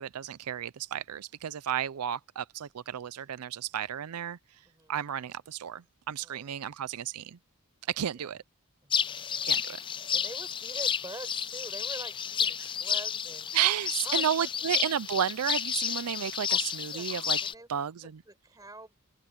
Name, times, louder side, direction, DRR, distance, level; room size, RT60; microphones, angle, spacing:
voice 1, 0.0-4.4 4.9-7.4 7.9-8.4 9.5-9.8 13.5-17.4 17.7-18.1, right 10 dB, 85° right, 0.5 m, -32 dB
voice 2, 6.2-6.7 8.0-8.3 8.8-9.4 9.8-13.5 14.0-14.5 16.5-16.6 16.9-17.1 17.4-17.7 18.3-18.9, right 2 dB, 15° right, 4.9 m, -46 dB
sound 1, 8.9-17.5, left 8 dB, 20° left, 0.4 m, -31 dB
head